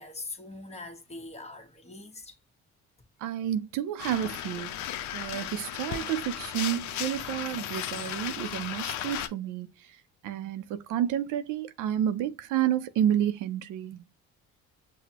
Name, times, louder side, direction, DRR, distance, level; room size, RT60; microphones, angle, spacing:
voice 1, 0.0-2.4, left 3 dB, 20° left, 1.1 m, -42 dB
voice 2, 3.2-4.8 5.1-10.0 10.2-14.1, right 10 dB, 80° right, 0.6 m, -30 dB
sound 1, 4.0-9.3, left 11 dB, 70° left, 0.6 m, -35 dB
6.0 x 2.2 x 2.8 m
supercardioid pair, 75°, 30 cm